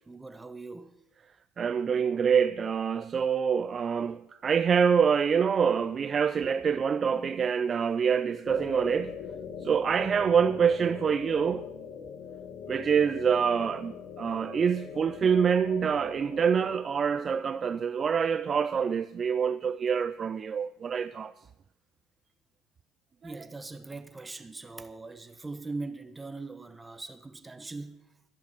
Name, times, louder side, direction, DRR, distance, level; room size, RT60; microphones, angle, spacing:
voice 1, 0.1-1.0 23.2-28.0, right 3 dB, 15° right, 1.3 m, -41 dB
voice 2, 1.6-9.2 9.6-11.7 12.7-21.3 23.2-23.3, right 6 dB, 40° right, 0.4 m, -26 dB
sound 1, 8.4-16.8, left 7 dB, 60° left, 1.9 m, -42 dB
12.5 x 10.5 x 7.5 m
hypercardioid pair, 70°, 0 cm